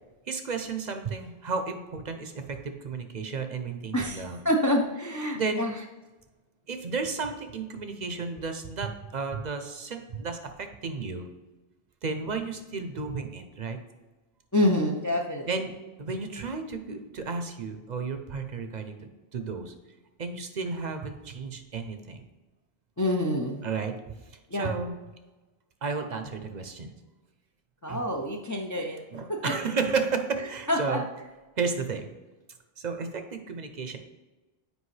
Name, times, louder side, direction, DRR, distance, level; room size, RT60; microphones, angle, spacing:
voice 1, 0.3-4.4 5.3-5.6 6.7-11.3 12.0-13.8 15.5-19.7 20.2-22.2 23.6-24.1 24.5-24.9 25.8-26.9 27.9-28.1 29.1-31.0 31.6-32.1 32.8-34.0, right 4 dB, 50° right, 6 dB, 0.7 m, -33 dB
voice 2, 3.9-5.7 14.5-15.5 23.0-23.7 24.5-24.7 27.8-29.0 29.3-29.5 30.7-31.0, left 1 dB, 25° left, 1 dB, 0.4 m, -27 dB
8.1 x 5.0 x 3.2 m, 1.2 s
omnidirectional pair, 1.1 m